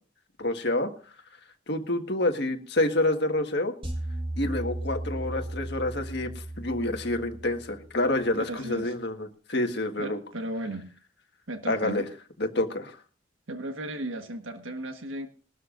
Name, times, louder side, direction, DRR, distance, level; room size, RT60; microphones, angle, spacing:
voice 1, 0.4-0.9 1.7-3.7 4.4-10.2 11.7-12.0 12.4-13.0, left 1 dB, 55° left, 5 dB, 1.7 m, -28 dB
sound 1, 3.8-8.1, right 1 dB, 30° right, 4.4 m, -36 dB
voice 2, 8.5-8.9 10.0-10.9 11.5-12.1 13.5-15.3, right 1 dB, 85° right, 6 dB, 1.5 m, -35 dB
21.5 x 12.5 x 2.6 m, 0.37 s
head